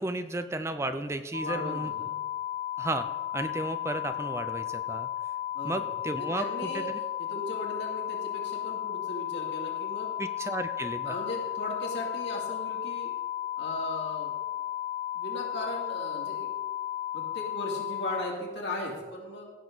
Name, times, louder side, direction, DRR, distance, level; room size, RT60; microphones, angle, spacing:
voice 1, 0.0-1.9 2.8-3.1 3.3-5.1 5.6-7.0 10.2-11.2, right 2 dB, 15° right, 10 dB, 0.4 m, -33 dB
sound 1, 1.3-18.2, left 12 dB, 35° left, 0.7 m, -34 dB
voice 2, 1.4-2.2 5.5-5.8 6.1-6.9 7.2-10.1 11.1-13.1 13.6-14.3 15.1-16.5 17.1-19.5, left 1 dB, 60° left, -2 dB, 2.7 m, -37 dB
16.5 x 7.0 x 4.0 m, 1.3 s
head